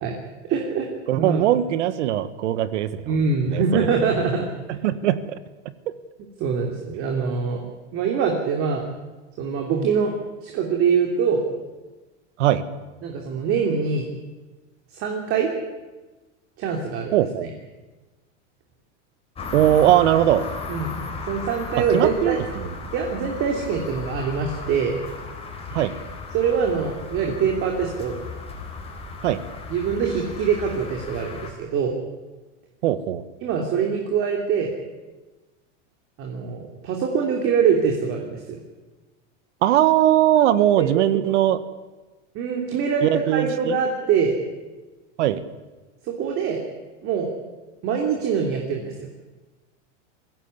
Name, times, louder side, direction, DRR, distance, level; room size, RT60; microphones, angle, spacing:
voice 1, 0.5-0.9 1.1-1.5 3.1-4.5 6.4-7.6 7.9-8.8 9.4-10.1 10.4-11.4 13.0-14.1 14.9-15.5 16.6-17.5 20.7-21.0 21.3-22.4 22.9-24.9 26.3-28.1 29.7-31.9 33.4-34.7 36.2-38.6 40.8-41.2 42.3-44.3 46.0-46.6 47.0-47.3 47.8-49.1, right 6 dB, 35° right, 1 dB, 3.1 m, -24 dB
voice 2, 1.1-3.0 3.5-3.9 4.7-5.4 5.9-6.0 12.4-12.6 17.1-17.5 19.5-20.5 21.9-22.6 25.7-25.9 29.2-29.4 32.8-33.2 39.6-41.6 43.0-43.8 45.2-45.4, right 12 dB, 80° right, 13 dB, 1.6 m, -20 dB
sound 1, 19.3-31.5, left 4 dB, 15° left, 4.0 m, -35 dB
22.0 x 16.0 x 9.7 m, 1.2 s
supercardioid pair, 150°, 35 cm